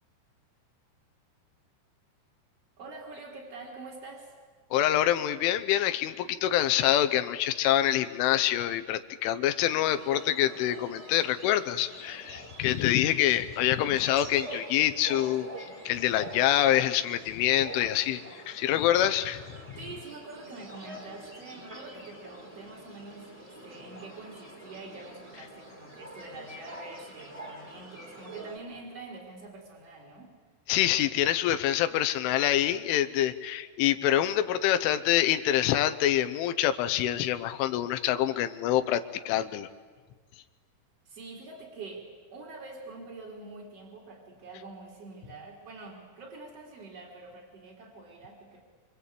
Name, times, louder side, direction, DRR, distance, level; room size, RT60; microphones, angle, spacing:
voice 1, 2.8-4.3 19.8-30.3 41.0-48.6, right 3 dB, 35° right, -3 dB, 4.6 m, -45 dB
voice 2, 4.7-15.5 15.9-18.2 18.5-19.4 30.7-39.7, left 12 dB, 85° left, 9 dB, 3.5 m, -26 dB
sound 1, 9.8-28.6, right 1 dB, 10° right, 3.3 m, -46 dB
26.5 x 25.5 x 8.4 m, 1.5 s
omnidirectional pair, 5.5 m